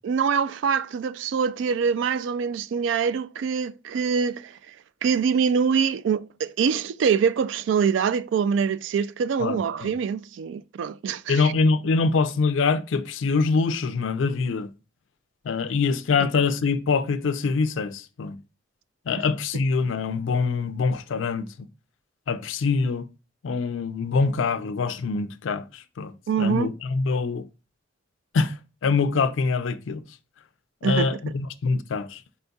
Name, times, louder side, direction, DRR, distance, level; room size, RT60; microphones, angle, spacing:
voice 1, 0.0-4.6 5.0-11.5 16.2-16.3 26.3-26.7 30.8-31.1, right 6 dB, 70° right, 0.3 m, -24 dB
voice 2, 9.4-9.9 11.3-14.7 15.5-18.4 19.1-21.5 22.3-23.0 23.4-27.5 28.3-28.5 28.8-30.0 30.8-32.2, left 4 dB, 75° left, 0.4 m, -24 dB
4.3 x 4.0 x 2.2 m
head